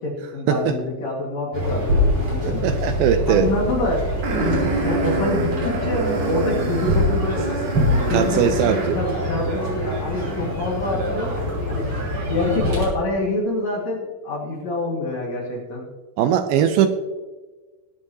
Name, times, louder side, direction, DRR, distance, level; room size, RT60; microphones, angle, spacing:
voice 1, 0.0-2.6 3.3-4.1 4.4-7.5 8.1-11.3 11.7-11.9 12.3-15.9, left 2 dB, 50° left, -2 dB, 2.5 m, -26 dB
sound 1, 1.5-12.8, left 1 dB, 40° right, 4.3 m, -24 dB
voice 2, 2.5-3.5 8.1-9.0 16.2-16.9, right 9 dB, 85° right, 9 dB, 2.2 m, -20 dB
sound 2, 4.2-9.1, right 4 dB, 65° right, 3.5 m, -28 dB
20.5 x 8.4 x 2.8 m, 1.3 s
omnidirectional pair, 4.9 m